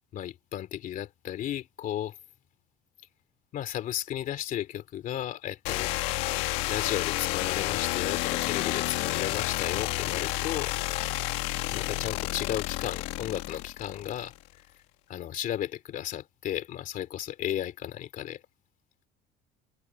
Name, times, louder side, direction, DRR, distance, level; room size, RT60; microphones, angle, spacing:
voice 1, 0.1-2.1 3.5-6.0 6.7-10.7 11.7-14.3 15.1-18.4, left 11 dB, 50° left, 2.7 m, -34 dB
sound 1, 5.6-14.4, left 20 dB, 90° left, 1.4 m, -30 dB
open air
cardioid pair, 140°, 18 cm